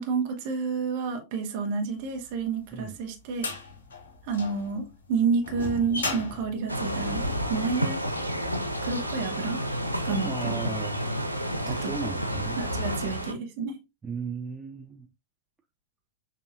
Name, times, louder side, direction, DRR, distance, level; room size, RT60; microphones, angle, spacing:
voice 1, 0.0-3.5 4.3-8.0 8.8-9.6 10.0-10.6 11.7-11.9 12.6-13.8, right 5 dB, 50° right, 1.1 m, -30 dB
sound 1, 2.4-7.7, left 2 dB, 65° left, 1.2 m, -36 dB
sound 2, 6.7-13.3, equal, 90° left, 0.5 m, -30 dB
voice 2, 10.2-11.1 11.7-12.6 14.0-15.1, right 5 dB, 15° right, 0.4 m, -35 dB
6.5 x 2.7 x 2.4 m
figure-of-eight pair, 90°, 0 cm